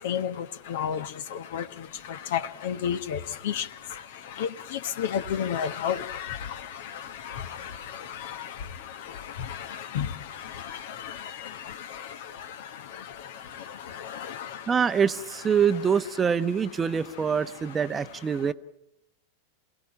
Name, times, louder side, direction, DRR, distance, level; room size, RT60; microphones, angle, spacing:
voice 1, 0.0-14.8 18.3-18.4, left 8 dB, 55° left, 1.2 m, -33 dB
voice 2, 14.7-18.5, right 7 dB, 20° right, 0.9 m, -25 dB
27.5 x 17.5 x 8.7 m
figure-of-eight pair, 90°, 0 cm